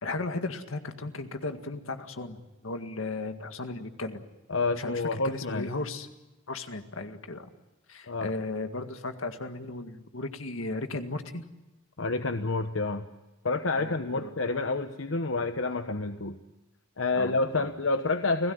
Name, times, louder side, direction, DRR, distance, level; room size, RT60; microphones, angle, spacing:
voice 1, 0.0-4.2 4.8-6.1 6.5-7.5 7.9-11.4 13.8-14.3 17.2-17.7, left 2 dB, 85° left, 7 dB, 1.9 m, -36 dB
voice 2, 4.5-5.7 8.1-8.3 12.0-13.0 13.4-16.4 17.0-18.5, left 3 dB, 70° left, 8 dB, 1.0 m, -28 dB
29.5 x 17.5 x 9.4 m, 1.0 s
head